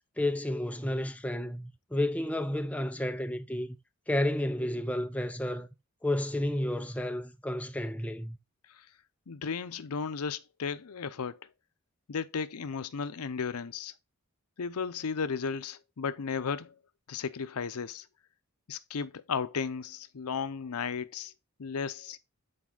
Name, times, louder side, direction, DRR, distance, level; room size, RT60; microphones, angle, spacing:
voice 1, 0.2-3.7 4.1-5.7 6.0-8.4, left 1 dB, 5° left, 0.5 m, -31 dB
voice 2, 9.3-11.5 12.1-13.9 14.6-16.8 17.1-18.1 18.7-21.3 21.6-22.2, left 5 dB, 80° left, 0.6 m, -34 dB
8.7 x 4.2 x 3.8 m
head